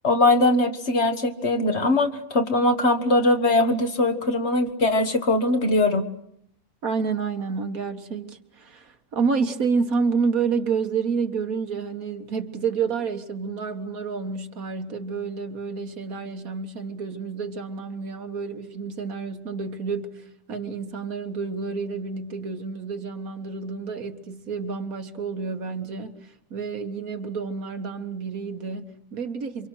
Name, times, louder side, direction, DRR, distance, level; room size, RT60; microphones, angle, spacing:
voice 1, 0.0-6.1, left 2 dB, 50° left, 1.8 m, -21 dB
voice 2, 6.8-29.7, right 5 dB, 85° right, 2.0 m, -29 dB
28.0 x 25.0 x 6.4 m
omnidirectional pair, 1.5 m